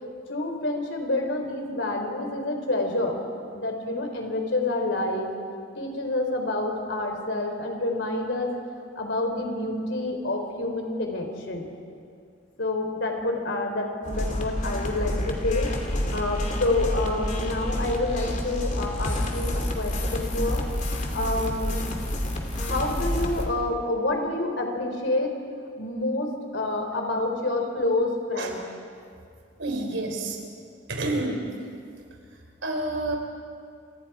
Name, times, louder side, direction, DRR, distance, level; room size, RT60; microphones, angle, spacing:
voice 1, 0.3-3.2 3.5-5.3 5.8-8.5 9.0-11.7 12.6-20.6 20.9-21.8 22.5-25.4 25.8-28.6, left 2 dB, 65° left, 3 dB, 3.7 m, -28 dB
sound 1, 14.0-23.4, left 1 dB, 40° left, 2.9 m, -28 dB
voice 2, 29.6-30.4 30.9-31.5 32.6-33.2, right 2 dB, 75° right, 3 dB, 3.8 m, -28 dB
27.5 x 25.0 x 4.9 m, 2.3 s
head